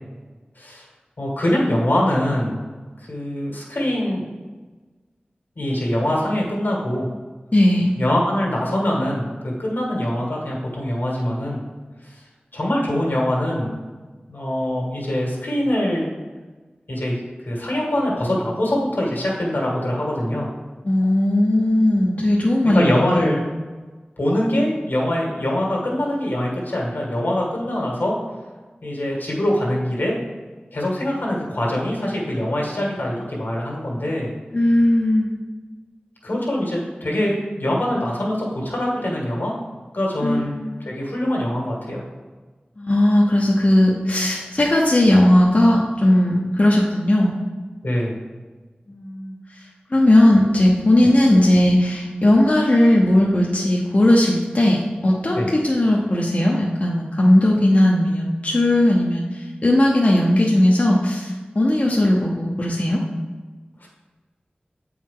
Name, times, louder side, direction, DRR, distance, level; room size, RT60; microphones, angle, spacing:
voice 1, 1.2-2.6 3.1-4.2 5.6-7.1 8.0-11.6 12.5-13.7 14.3-16.1 16.9-17.2 17.5-20.5 22.6-23.4 24.2-28.2 28.8-30.2 30.7-34.3 36.2-39.6 39.9-40.5 40.8-42.0 47.8-48.2 55.3-55.5 63.8-63.9, left 1 dB, 80° left, -3 dB, 1.8 m, -23 dB
voice 2, 7.5-7.9 20.8-23.4 34.5-35.4 40.2-40.9 42.8-47.3 48.9-49.6 49.9-63.0, left 1 dB, 45° left, -3 dB, 0.8 m, -17 dB
8.2 x 4.7 x 3.7 m, 1.3 s
wide cardioid pair, 60°, 3 cm